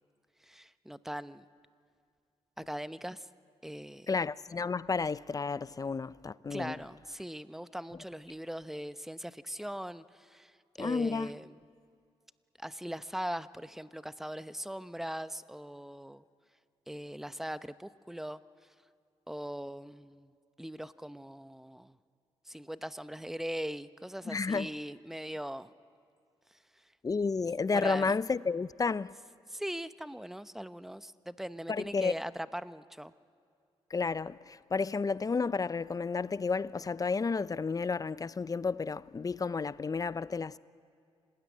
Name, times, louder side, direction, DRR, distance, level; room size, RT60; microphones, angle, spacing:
voice 1, 0.4-1.4 2.6-3.3 3.6-4.1 6.5-11.5 12.6-16.2 16.9-18.4 19.3-20.3 20.6-22.0 22.5-25.7 27.7-28.1 29.5-33.1, equal, 5° right, 0.8 m, -40 dB
voice 2, 4.1-6.8 10.8-11.3 24.3-24.7 27.0-29.1 31.7-32.1 33.9-40.6, left 4 dB, 35° left, 0.6 m, -31 dB
26.5 x 19.5 x 9.5 m
cardioid pair, 60°, 11 cm